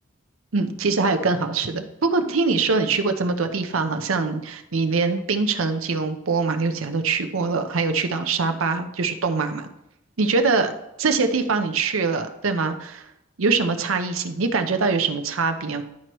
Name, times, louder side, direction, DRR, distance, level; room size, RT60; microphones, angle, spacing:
voice 1, 0.5-9.7 10.2-10.7 11.0-13.0 13.4-15.8, right 4 dB, 85° right, 8 dB, 0.7 m, -23 dB
11.5 x 4.5 x 3.0 m, 0.86 s
head